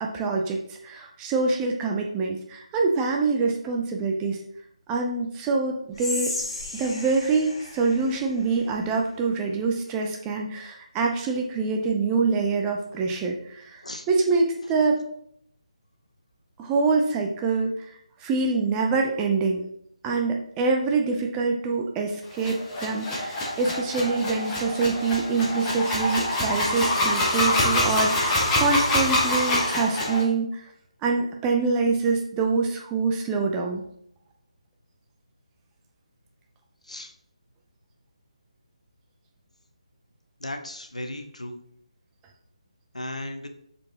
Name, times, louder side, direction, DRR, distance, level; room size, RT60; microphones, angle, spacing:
voice 1, 0.0-4.4 4.9-6.3 6.7-15.0 16.6-17.7 18.2-19.7 20.0-30.7 31.0-33.8, right 4 dB, 10° right, 1 dB, 0.5 m, -25 dB
Whispering, 5.9-9.1, left 2 dB, 50° left, 2.2 m, -35 dB
sound 1, 22.3-30.2, left 1 dB, 15° left, 1.1 m, -25 dB
voice 2, 40.4-41.6 42.9-43.5, left 1 dB, 75° left, 6 dB, 0.9 m, -35 dB
7.5 x 4.4 x 2.8 m, 0.69 s
figure-of-eight pair, 150°, 4 cm